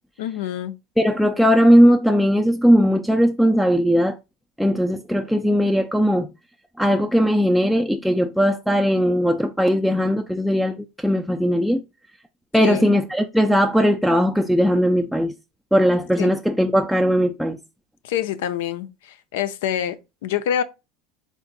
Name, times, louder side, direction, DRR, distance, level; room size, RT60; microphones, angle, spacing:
voice 1, 0.2-0.8 12.6-12.9 16.2-16.3 18.0-20.6, left 10 dB, 85° left, 0.4 m, -26 dB
voice 2, 1.0-4.2 4.6-6.3 6.8-10.7 11.0-11.8 12.5-15.3 15.7-17.6, equal, ahead, 0.3 m, -18 dB
3.6 x 2.5 x 3.9 m
supercardioid pair, 120°, 0 cm